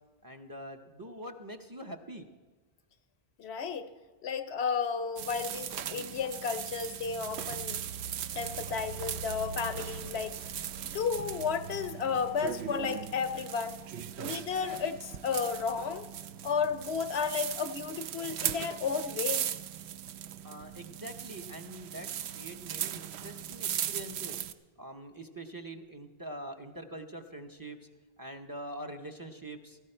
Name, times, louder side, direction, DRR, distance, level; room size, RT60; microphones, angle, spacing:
voice 1, 0.2-2.3 20.4-24.4 24.8-27.8 28.2-29.8, right 1 dB, 20° right, 6 dB, 0.8 m, -44 dB
voice 2, 3.4-3.9 4.2-7.9 8.3-10.4 10.8-13.8 14.2-16.1 16.4-19.5, left 6 dB, 85° left, 11 dB, 1.0 m, -33 dB
sound 1, 5.2-24.5, right 9 dB, 85° right, 0.9 m, -38 dB
16.0 x 14.5 x 4.4 m, 1.3 s
omnidirectional pair, 1.1 m